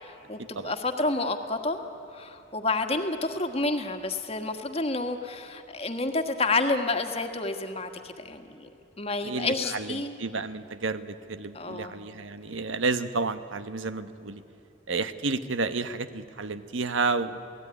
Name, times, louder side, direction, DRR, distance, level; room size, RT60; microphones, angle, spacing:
voice 1, 0.0-1.8 2.1-8.7 9.0-10.1 11.5-11.9, left 2 dB, 30° left, 6 dB, 1.6 m, -29 dB
voice 2, 9.2-14.4 14.9-17.4, right 3 dB, 80° right, 11 dB, 1.1 m, -31 dB
28.5 x 18.0 x 9.9 m, 2.9 s
head